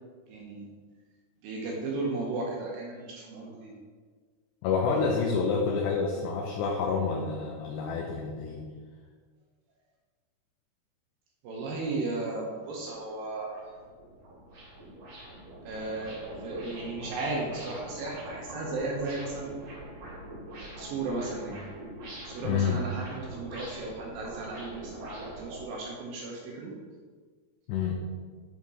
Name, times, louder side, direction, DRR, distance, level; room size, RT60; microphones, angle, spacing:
voice 1, 0.3-0.6 1.4-3.7 11.4-13.7 15.6-19.6 20.6-21.6 22.3-26.7, right 3 dB, 75° right, -2 dB, 2.2 m, -35 dB
voice 2, 4.6-8.7 22.4-22.8 27.7-28.0, left 5 dB, 80° left, -1 dB, 2.8 m, -28 dB
sound 1, 12.7-12.8 13.3-25.7, right 1 dB, 50° right, 3.6 m, -44 dB
7.7 x 5.1 x 4.0 m, 1.5 s
omnidirectional pair, 5.1 m